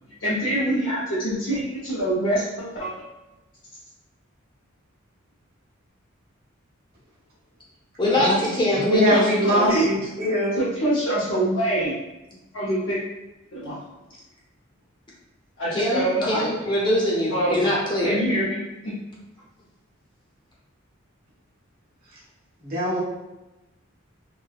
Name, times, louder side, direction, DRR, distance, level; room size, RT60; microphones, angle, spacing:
voice 1, 0.2-2.9 9.4-9.8 10.6-12.0 12.5-13.0 13.5-13.8 15.6-16.5 17.3-17.7 18.0-18.9, right 1 dB, 70° left, -9 dB, 0.7 m, -25 dB
voice 2, 8.0-9.2 9.5-9.6 15.7-18.2, left 1 dB, 25° left, -5 dB, 0.7 m, -23 dB
voice 3, 8.7-10.6 22.6-23.0, equal, 50° right, -6 dB, 1.0 m, -22 dB
3.1 x 2.2 x 2.3 m, 0.99 s
head